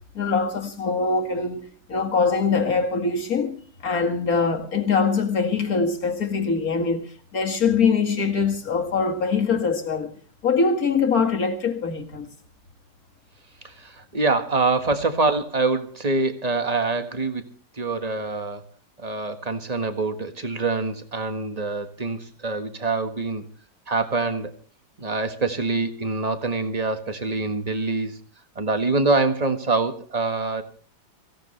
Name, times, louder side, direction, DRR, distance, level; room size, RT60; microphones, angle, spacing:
voice 1, 0.1-10.1 10.4-12.3, left 5 dB, 50° left, 2.4 m, -23 dB
voice 2, 13.6-17.4 17.8-18.6 19.0-23.5 23.9-24.5 25.0-28.2 28.5-30.6, right 3 dB, 20° right, 1.5 m, -25 dB
23.5 x 16.5 x 3.3 m
omnidirectional pair, 2.1 m